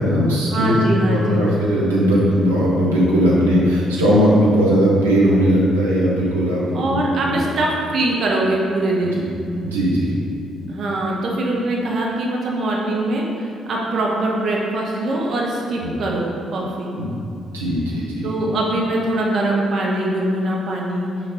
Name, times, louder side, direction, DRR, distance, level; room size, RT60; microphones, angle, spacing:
voice 1, 0.0-7.4 9.2-9.3 9.6-10.1 15.8-15.9 17.0-17.1 17.5-18.3, equal, 80° right, -6 dB, 1.1 m, -18 dB
voice 2, 0.5-1.5 6.7-9.2 10.7-16.9 18.2-21.1, right 1 dB, 50° right, -2 dB, 1.0 m, -22 dB
6.1 x 5.2 x 4.1 m, 2.6 s
figure-of-eight pair, 40°, 0 cm